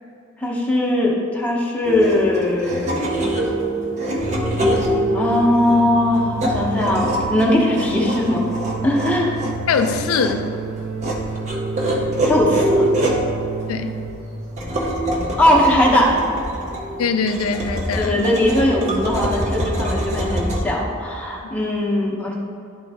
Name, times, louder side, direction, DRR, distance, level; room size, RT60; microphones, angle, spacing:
voice 1, 0.4-3.3 5.1-8.4 8.8-9.3 12.2-13.0 15.4-16.3 18.0-22.3, left 1 dB, 5° left, -5 dB, 1.0 m, -19 dB
sound 1, 1.8-20.6, right 1 dB, 35° right, 0.8 m, -25 dB
sound 2, 4.2-14.1, right 4 dB, 75° right, 1.2 m, -30 dB
voice 2, 9.4-10.5 13.7-13.9 17.0-18.3 21.4-21.7, left 5 dB, 80° left, 7 dB, 0.4 m, -23 dB
11.0 x 3.9 x 3.5 m, 2.6 s
head